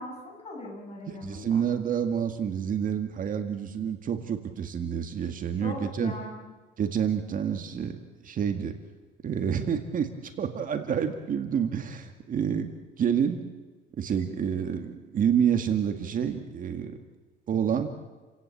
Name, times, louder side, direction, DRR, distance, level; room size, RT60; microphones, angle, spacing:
voice 1, 0.0-1.6 5.6-6.5, left 2 dB, 30° left, 0 dB, 7.9 m, -40 dB
voice 2, 1.1-6.1 6.8-8.0 8.2-8.7 9.2-13.4 14.0-17.0 17.5-17.9, right 8 dB, 45° right, 6 dB, 2.0 m, -28 dB
29.5 x 16.5 x 8.6 m, 1.3 s
cardioid pair, 140°, 20 cm